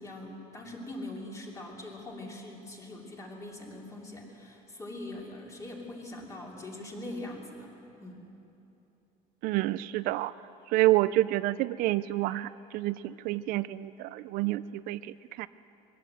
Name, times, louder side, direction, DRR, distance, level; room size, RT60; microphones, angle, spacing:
voice 1, 0.0-7.7 8.0-8.2, left 1 dB, 20° left, -1 dB, 3.0 m, -42 dB
voice 2, 9.4-10.3 10.7-15.5, right 17 dB, 60° right, 14 dB, 0.4 m, -28 dB
21.5 x 17.0 x 7.7 m, 2.9 s
cardioid pair, 160°, 16 cm